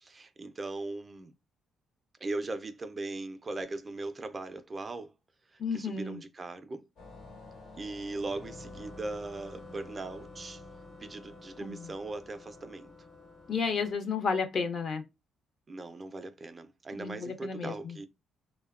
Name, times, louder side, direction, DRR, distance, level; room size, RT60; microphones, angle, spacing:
voice 1, 0.0-1.3 2.2-5.1 5.5-6.8 7.8-10.6 11.0-12.9 15.7-18.1, right 2 dB, 30° right, 0.3 m, -39 dB
voice 2, 5.6-6.2 11.6-11.9 13.5-15.0 16.9-18.0, left 5 dB, 55° left, 0.5 m, -32 dB
sound 1, 7.0-13.9, left 2 dB, 75° left, 1.1 m, -49 dB
2.6 x 2.1 x 2.3 m
cardioid pair, 90°, 0 cm